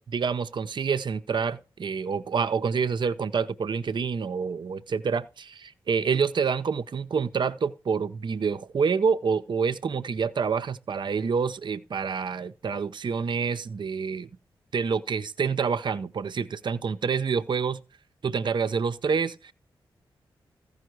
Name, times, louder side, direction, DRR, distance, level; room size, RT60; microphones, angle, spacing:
voice 1, 0.0-14.3 14.7-17.8 18.2-19.5, right 5 dB, 55° right, 0.6 m, -27 dB
14.5 x 5.5 x 4.6 m
cardioid pair, 50°, 9 cm